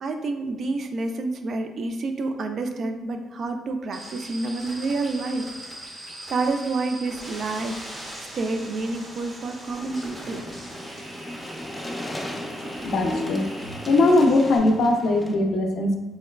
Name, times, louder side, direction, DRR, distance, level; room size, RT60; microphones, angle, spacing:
voice 1, 0.0-5.5 6.0-7.8 8.3-10.4, right 3 dB, 55° right, 6 dB, 0.3 m, -28 dB
sound 1, 3.9-14.6, right 1 dB, 30° right, 0.8 m, -40 dB
sound 2, 9.7-15.3, left 1 dB, 15° left, 0.5 m, -37 dB
voice 2, 12.8-13.5 13.9-16.0, left 2 dB, 70° left, 4 dB, 0.4 m, -20 dB
4.5 x 2.1 x 2.2 m, 1.1 s
cardioid pair, 90°, 0 cm